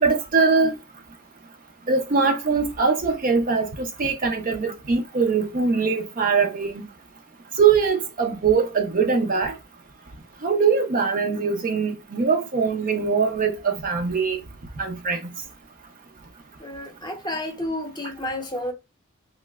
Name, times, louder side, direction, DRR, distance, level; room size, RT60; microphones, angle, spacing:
voice 1, 0.0-0.7 1.9-6.8 7.6-9.6 10.4-14.4 14.8-15.2, right 5 dB, 40° right, 0.5 m, -22 dB
voice 2, 16.6-18.7, left 1 dB, 20° left, 0.7 m, -31 dB
3.1 x 2.8 x 2.2 m
head